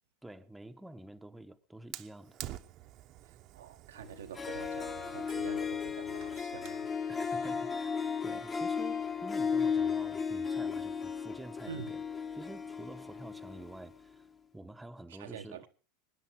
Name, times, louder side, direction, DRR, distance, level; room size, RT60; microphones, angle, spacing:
voice 1, 0.2-2.4 7.1-12.0 12.3-14.3 14.5-15.7, right 1 dB, 5° right, 1.0 m, -48 dB
Fire, 1.9-6.9, right 14 dB, 55° right, 0.9 m, -49 dB
voice 2, 3.3-6.9 11.7-11.9 15.1-15.7, right 9 dB, 85° right, 1.1 m, -47 dB
Harp, 4.1-4.2 4.3-13.9, left 6 dB, 25° left, 1.4 m, -35 dB
23.0 x 10.0 x 4.6 m
hypercardioid pair, 95°, 0 cm